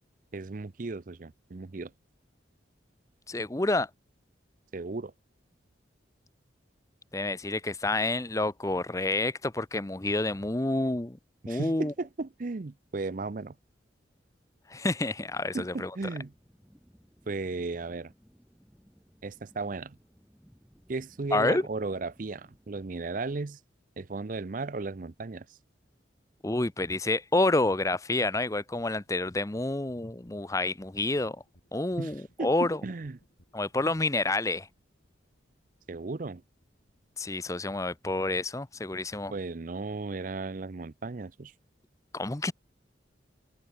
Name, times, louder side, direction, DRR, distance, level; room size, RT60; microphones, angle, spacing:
voice 1, 0.3-1.9 4.7-5.1 11.4-13.6 15.5-16.3 17.3-18.1 19.2-20.0 20.9-23.6 24.0-25.6 32.0-33.2 35.9-36.4 39.3-41.5, right 3 dB, 45° right, 0.6 m, -35 dB
voice 2, 3.3-3.9 7.1-11.2 11.5-11.9 14.7-15.9 21.3-21.6 26.4-31.4 31.7-32.8 33.5-34.7 37.2-39.3 42.1-42.5, left 2 dB, 15° left, 0.7 m, -28 dB
sound 1, 16.0-23.0, equal, 5° right, 2.9 m, -61 dB
sound 2, 28.6-39.4, equal, 60° left, 7.6 m, -66 dB
head